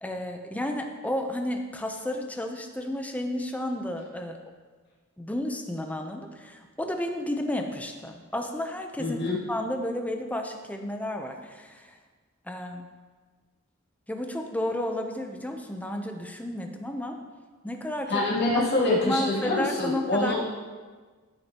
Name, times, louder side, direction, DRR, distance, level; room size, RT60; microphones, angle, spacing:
voice 1, 0.0-4.4 5.2-11.9 12.5-12.9 14.1-17.2 17.6-18.2 19.0-20.3, left 1 dB, 5° left, 4 dB, 0.6 m, -32 dB
voice 2, 9.0-9.4 18.1-20.4, left 2 dB, 55° left, -6 dB, 2.6 m, -25 dB
13.5 x 6.4 x 2.9 m, 1.4 s
head